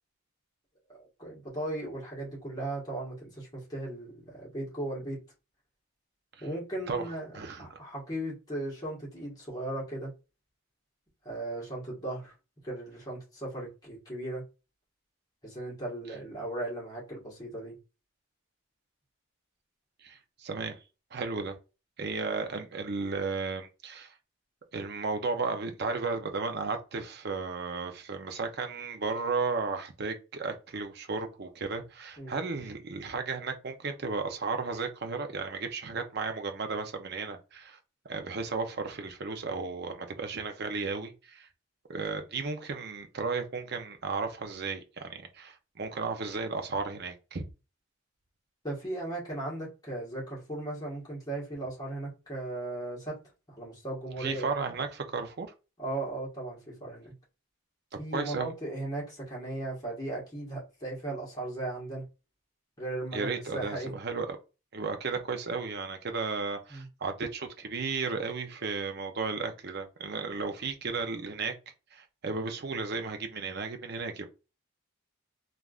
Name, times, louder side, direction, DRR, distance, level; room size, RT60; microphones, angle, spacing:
voice 1, 0.9-5.2 6.4-10.1 11.2-12.3 12.6-14.4 15.4-17.7 32.2-32.4 48.6-53.2 53.5-54.6 55.8-57.1 58.0-62.0 62.8-63.9 66.7-66.8, right 2 dB, 15° left, 1.3 m, -37 dB
voice 2, 6.9-7.8 20.0-20.8 21.1-21.6 22.0-24.1 24.7-37.8 38.1-41.5 41.9-47.4 54.2-55.5 58.1-58.5 63.1-64.3 64.7-71.5 71.9-74.3, right 4 dB, 45° right, 0.5 m, -34 dB
3.4 x 2.4 x 2.4 m
head